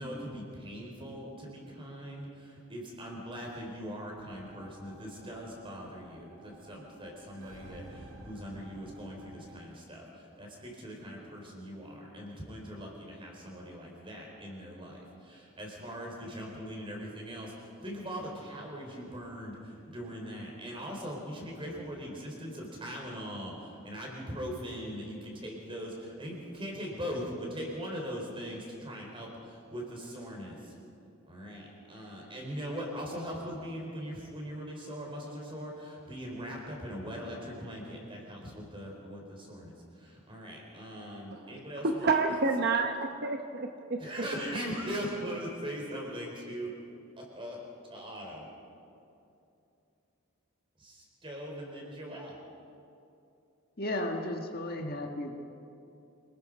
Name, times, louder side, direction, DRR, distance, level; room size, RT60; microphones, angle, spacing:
voice 1, 0.0-30.7 31.3-42.2 44.0-46.8 47.2-47.6 47.9-48.5 50.8-52.4, equal, 25° right, -1 dB, 4.6 m, -40 dB
sound 1, 4.1-9.5, right 1 dB, 75° right, 4.4 m, -51 dB
voice 2, 41.8-44.0, right 3 dB, 45° right, 5 dB, 0.9 m, -29 dB
voice 3, 53.8-55.3, left 1 dB, 45° left, 3 dB, 1.6 m, -34 dB
27.0 x 20.0 x 5.3 m, 2.7 s
head